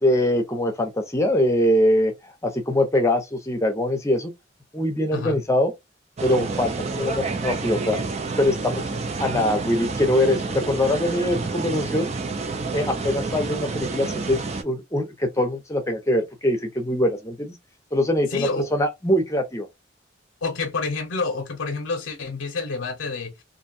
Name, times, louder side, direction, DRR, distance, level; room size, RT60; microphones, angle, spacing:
voice 1, 0.0-4.3 4.7-5.7 6.2-8.0 8.4-8.8 9.2-12.1 12.7-17.6 17.9-19.7, left 1 dB, 15° left, 0.7 m, -23 dB
voice 2, 5.1-5.4 18.3-18.7 20.4-23.3, left 3 dB, 85° left, 0.6 m, -28 dB
sound 1, 6.2-14.6, right 3 dB, 35° right, 0.4 m, -29 dB
2.6 x 2.2 x 2.6 m
head